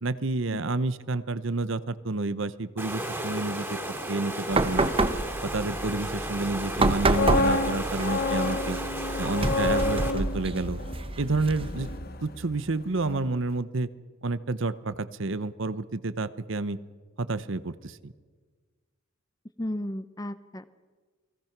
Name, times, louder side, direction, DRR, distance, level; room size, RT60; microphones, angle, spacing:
voice 1, 0.0-3.8 4.1-4.9 5.4-8.8 9.2-10.8 11.2-11.9 12.2-13.9 14.2-16.8 17.2-18.1, right 2 dB, 65° right, 14 dB, 0.9 m, -29 dB
Water, 2.8-10.1, right 1 dB, 10° right, 3.1 m, -34 dB
sound 1, 4.5-12.0, right 2 dB, 25° right, 1.1 m, -29 dB
sound 2, 7.0-12.7 13.0-13.3, left 2 dB, 50° left, 1.4 m, -30 dB
voice 2, 19.6-20.6, left 1 dB, 15° left, 13 dB, 0.7 m, -33 dB
29.0 x 20.5 x 6.0 m, 1.5 s
head